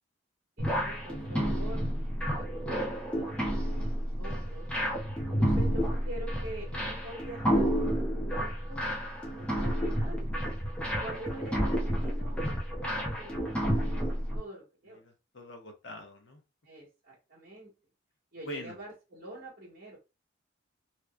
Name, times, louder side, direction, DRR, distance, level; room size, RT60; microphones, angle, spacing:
sound 1, 0.6-14.4, equal, 5° left, 0.7 m, -30 dB
voice 1, 0.6-1.9 2.2-4.7 5.3-7.7 8.1-8.8 9.4-10.3 11.0-13.8 14.3-15.0 16.6-17.7 18.3-20.0, right 1 dB, 45° right, -5 dB, 1.6 m, -45 dB
voice 2, 15.0-16.4 18.4-18.8, equal, 65° left, 4 dB, 0.9 m, -43 dB
3.3 x 3.0 x 2.4 m, 0.28 s
head